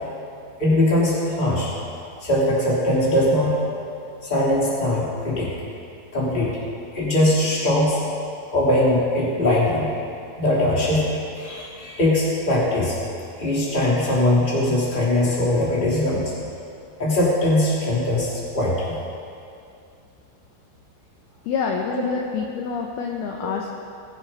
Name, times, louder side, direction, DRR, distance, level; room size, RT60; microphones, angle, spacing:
voice 1, 0.6-1.7 2.1-3.6 4.2-5.5 6.1-6.6 6.9-8.0 8.5-9.9 10.4-13.0 13.4-16.3 17.0-19.0 21.9-22.0, left 1 dB, 15° left, -6 dB, 2.3 m, -21 dB
voice 2, 21.5-23.7, left 5 dB, 80° left, 1 dB, 2.2 m, -27 dB
22.0 x 7.6 x 5.6 m, 2.5 s
omnidirectional pair, 5.6 m